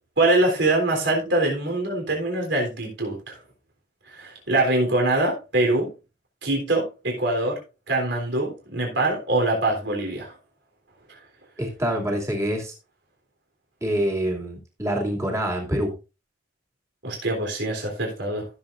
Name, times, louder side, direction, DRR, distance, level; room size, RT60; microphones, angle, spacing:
voice 1, 0.2-3.4 4.1-5.9 6.4-7.6 7.9-10.3 17.0-18.5, right 2 dB, 75° right, 0 dB, 3.6 m, -23 dB
voice 2, 11.6-12.7 13.8-15.9, equal, 15° right, 0 dB, 2.7 m, -26 dB
15.5 x 7.5 x 2.6 m, 0.29 s
head